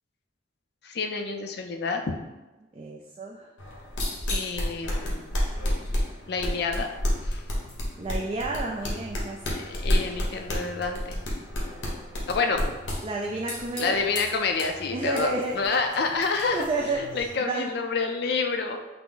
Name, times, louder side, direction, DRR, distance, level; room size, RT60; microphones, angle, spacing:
voice 1, 0.8-2.1 4.3-5.2 6.3-6.9 7.2-7.4 9.5-11.2 12.3-12.6 13.8-16.7 16.9-18.8, left 4 dB, 55° left, 5 dB, 0.4 m, -28 dB
voice 2, 2.7-3.5 8.0-9.8 13.0-14.0 14.9-15.6 16.5-17.1 17.4-17.7, right 3 dB, 30° right, -1 dB, 0.3 m, -31 dB
sound 1, 3.6-17.4, left 1 dB, 90° left, 1.1 m, -31 dB
5.8 x 2.0 x 3.8 m, 1.1 s
head